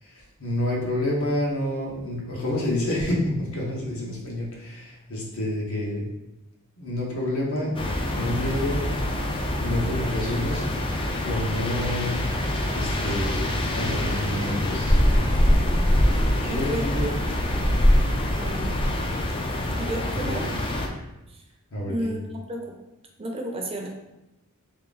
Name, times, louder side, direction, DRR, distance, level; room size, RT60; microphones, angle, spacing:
voice 1, 0.0-6.0 6.8-7.8 8.1-8.8 9.6-10.6 11.2-13.4 13.7-15.0 16.2-17.1 20.1-20.4 21.7-22.1, left 1 dB, 65° left, -3 dB, 1.1 m, -28 dB
sound 1, 7.8-20.9, left 1 dB, 25° left, 0.4 m, -24 dB
voice 2, 12.6-13.3 16.4-17.1 18.4-18.7 19.7-20.5 21.3-21.4 21.9-22.7 23.2-23.9, right 1 dB, 25° right, 1 dB, 0.5 m, -33 dB
3.4 x 2.9 x 3.9 m, 0.95 s
head